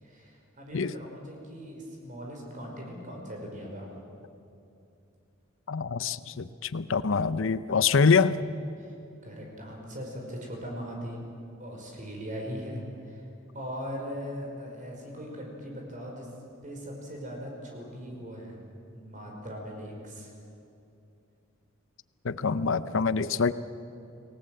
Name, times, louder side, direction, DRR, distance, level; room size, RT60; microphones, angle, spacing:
voice 1, 0.0-3.9 8.8-8.9 9.2-11.2 11.6-13.2 13.5-16.3 16.6-18.6 18.9-20.3, equal, 40° right, 0 dB, 5.3 m, -39 dB
voice 2, 5.7-8.4 22.2-23.5, left 5 dB, 65° left, 14 dB, 0.7 m, -25 dB
30.0 x 19.0 x 7.9 m, 2.7 s
head